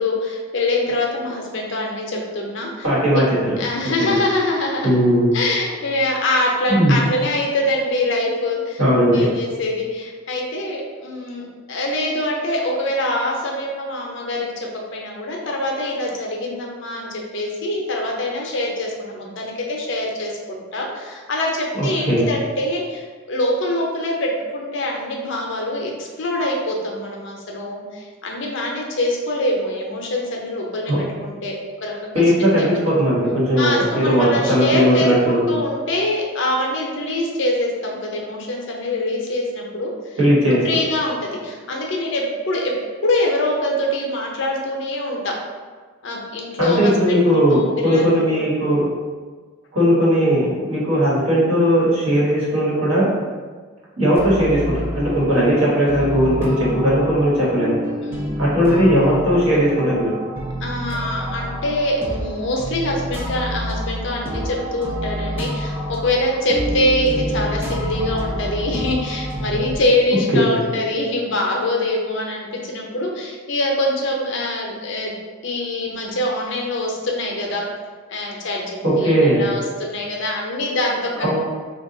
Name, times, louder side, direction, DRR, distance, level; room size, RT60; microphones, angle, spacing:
voice 1, 0.0-2.9 3.1-3.2 3.6-4.9 5.3-8.8 9.1-31.5 31.8-32.2 32.6-32.7 33.6-40.2 40.6-42.7 43.0-45.3 46.0-48.4 56.4-56.7 58.0-58.3 60.6-75.2 75.4-77.6 78.1-81.3, left 1 dB, 60° left, 0 dB, 0.5 m, -24 dB
voice 2, 2.8-3.2 4.0-4.1 4.8-5.3 6.7-7.0 8.8-9.2 21.7-22.2 30.9-31.0 32.1-35.5 40.2-40.6 46.6-48.8 49.7-53.1 54.0-57.7 58.4-60.1 70.3-70.6 78.8-79.4 81.2-81.3, equal, 80° right, -7 dB, 1.2 m, -17 dB
sound 1, 54.1-69.8, equal, 10° right, 0.4 m, -28 dB
2.7 x 2.3 x 3.7 m, 1.5 s
head